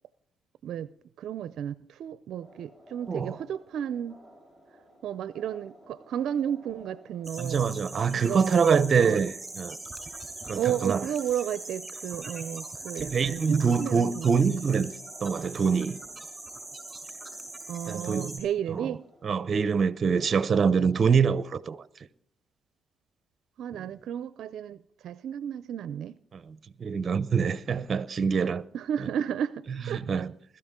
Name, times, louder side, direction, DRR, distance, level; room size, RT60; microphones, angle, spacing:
voice 1, 1.2-4.2 5.0-7.6 8.2-9.2 10.6-14.5 17.7-19.0 23.6-26.2 28.7-30.3, right 9 dB, 75° right, 0.5 m, -33 dB
sound 1, 2.4-21.7, equal, 20° left, 6.8 m, -56 dB
voice 2, 3.1-3.4 7.4-9.8 10.5-11.0 13.0-14.9 15.2-16.0 17.9-18.4 18.7-18.9 19.2-21.8 23.7-23.9 26.3-28.6 29.9-30.3, right 6 dB, 45° right, 0.8 m, -25 dB
sound 2, 7.2-18.4, right 2 dB, 20° right, 5.1 m, -41 dB
21.0 x 13.0 x 3.7 m
cardioid pair, 90°, 0 cm